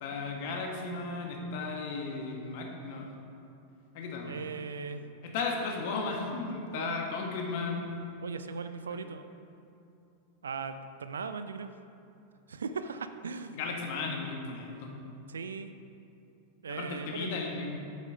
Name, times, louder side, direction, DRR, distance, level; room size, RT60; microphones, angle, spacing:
voice 1, 0.0-3.1 3.9-4.4 5.2-8.1 8.9-9.0 13.5-14.9 16.7-17.7, left 4 dB, 50° left, 1 dB, 1.6 m, -35 dB
voice 2, 4.2-5.0 6.7-6.9 8.2-9.3 10.4-11.7 12.5-13.6 15.3-15.7 16.6-17.7, right 5 dB, 70° right, 10 dB, 0.5 m, -38 dB
8.4 x 8.2 x 5.3 m, 2.7 s
figure-of-eight pair, 90°, 0 cm